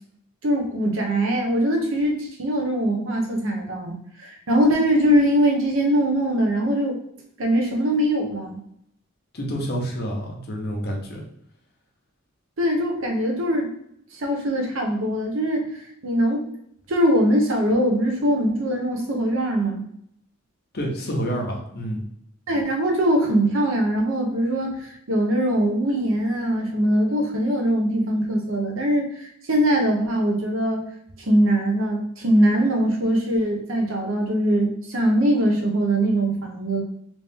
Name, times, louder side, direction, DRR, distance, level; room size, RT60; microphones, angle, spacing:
voice 1, 0.4-7.0 7.4-8.6 12.6-13.7 14.1-15.7 16.0-16.5 16.9-19.8 22.5-30.8 31.2-36.8, right 1 dB, 70° right, 1 dB, 0.8 m, -22 dB
voice 2, 9.3-11.2 20.7-22.0, equal, 50° left, 0 dB, 0.8 m, -28 dB
3.1 x 2.8 x 3.5 m, 0.71 s
head